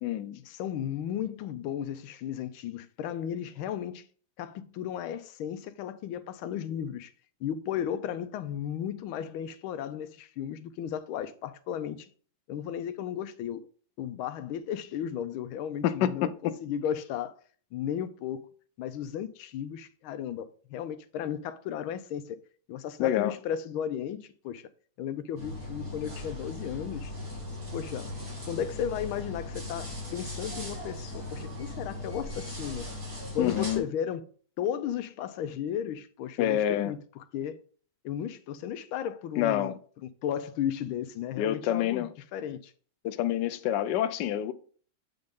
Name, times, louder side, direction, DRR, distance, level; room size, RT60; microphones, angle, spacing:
voice 1, 0.0-0.4 15.8-16.5 23.0-23.4 33.4-33.8 36.4-36.9 39.4-39.8 41.4-42.1 43.0-44.5, left 11 dB, 70° left, 1.1 m, -27 dB
voice 2, 0.6-4.0 4.4-7.1 7.4-12.1 12.5-13.6 14.0-16.3 16.6-17.4 17.7-18.5 18.8-22.4 22.7-24.7 25.0-27.1 27.7-28.1 28.4-32.9 33.3-34.2 34.6-37.6 38.0-39.7 40.2-42.7, left 9 dB, 90° left, 1.5 m, -34 dB
sound 1, 25.4-33.8, left 1 dB, 45° right, 3.3 m, -38 dB
7.9 x 5.3 x 3.6 m
omnidirectional pair, 2.2 m